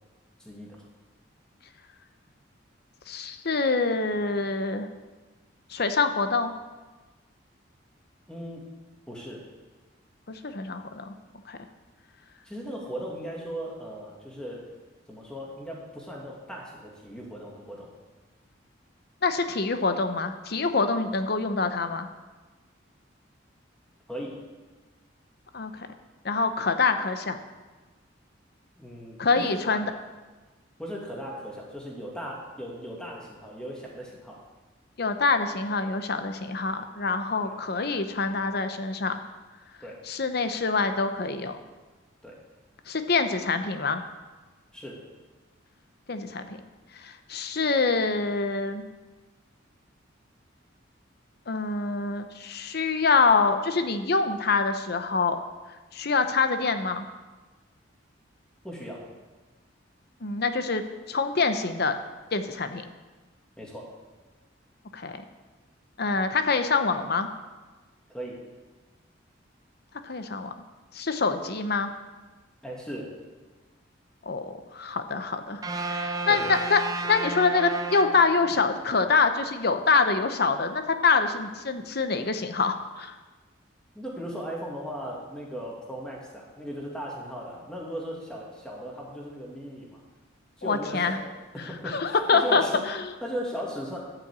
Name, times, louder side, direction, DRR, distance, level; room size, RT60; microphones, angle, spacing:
voice 1, 0.4-0.8 8.3-8.7 9.1-9.4 12.4-14.7 15.1-17.9 24.1-24.3 28.8-29.8 30.8-34.4 37.4-37.6 39.8-40.0 42.2-42.4 44.7-45.0 58.6-59.0 63.6-63.9 68.1-68.4 72.6-73.1 76.3-76.5 83.9-90.0 90.6-91.3 91.5-92.8 93.2-94.0, equal, 5° left, -3 dB, 2.4 m, -37 dB
voice 2, 3.1-4.9 5.7-6.5 10.3-11.1 11.5-11.6 19.2-22.1 25.5-25.9 26.2-27.4 29.2-29.9 35.0-39.2 40.1-41.6 42.9-44.0 46.1-46.6 47.0-48.8 51.5-55.4 55.9-57.1 60.2-60.8 61.1-62.0 62.3-62.8 64.9-65.2 66.0-67.3 70.0-70.5 70.9-71.9 74.2-75.6 75.9-76.8 77.1-83.1 90.6-91.2 91.8-93.0, left 4 dB, 55° left, 8 dB, 0.8 m, -25 dB
sound 1, 75.6-78.9, right 2 dB, 20° right, 0.6 m, -33 dB
12.0 x 6.0 x 8.2 m, 1.3 s
head